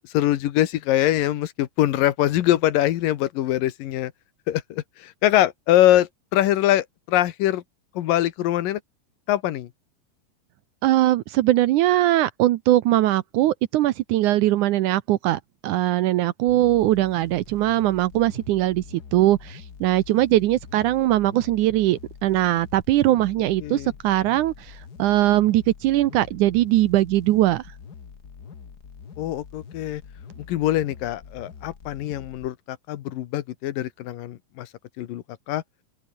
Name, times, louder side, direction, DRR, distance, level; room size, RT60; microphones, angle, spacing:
voice 1, 0.0-4.1 4.5-7.6 8.0-8.8 9.3-9.7 23.6-23.9 29.2-30.0 30.5-34.7 35.0-35.6, left 13 dB, 85° left, 2.9 m, -23 dB
voice 2, 10.8-27.6, right 15 dB, 75° right, 2.1 m, -21 dB
sound 1, 16.5-32.5, left 6 dB, 40° left, 1.7 m, -44 dB
open air
omnidirectional pair, 3.9 m